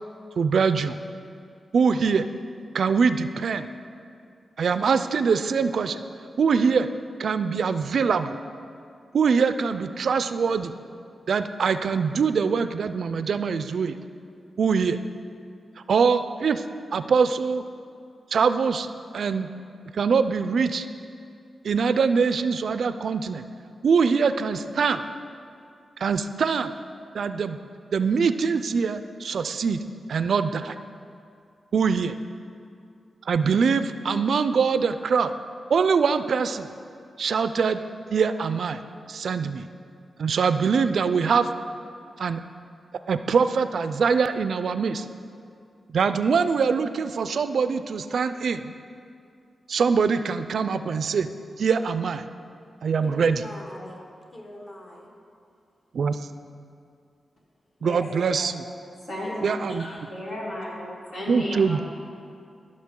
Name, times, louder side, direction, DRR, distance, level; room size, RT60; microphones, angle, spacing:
voice 1, 0.4-1.0 1.7-2.3 2.7-3.7 4.6-6.0 6.4-6.9 7.2-8.4 9.1-10.7 11.3-14.0 14.6-15.0 15.9-16.6 16.9-17.6 18.3-18.9 19.1-19.5 19.9-20.8 21.6-23.5 23.8-25.0 26.0-26.7 27.1-27.6 27.9-29.8 30.1-30.8 31.7-32.2 33.3-35.3 35.7-36.7 37.2-37.8 38.1-38.8 39.1-39.7 40.2-41.5 42.2-42.4 43.1-45.1 45.9-48.7 49.7-51.3 51.6-52.3 52.8-53.4 55.9-56.2 57.8-58.6 59.4-60.1 61.3-61.8, right 5 dB, 75° right, 11 dB, 0.3 m, -23 dB
voice 2, 53.0-54.0 54.3-55.1 59.2-60.1, left 1 dB, 35° left, 0 dB, 1.5 m, -41 dB
voice 3, 59.1-61.8, left 1 dB, 75° left, -5 dB, 2.4 m, -34 dB
14.5 x 6.4 x 3.7 m, 2.4 s
cardioid pair, 75°, 0 cm